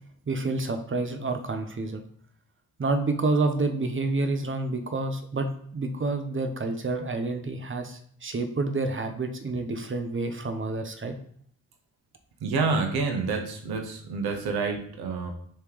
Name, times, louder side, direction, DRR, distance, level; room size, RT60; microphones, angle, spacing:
voice 1, 0.3-2.0 2.8-11.1, right 3 dB, 35° right, 6 dB, 0.9 m, -28 dB
voice 2, 12.4-15.3, right 4 dB, 80° right, 4 dB, 0.9 m, -28 dB
3.4 x 3.2 x 4.7 m, 0.63 s
supercardioid pair, 45°, 37 cm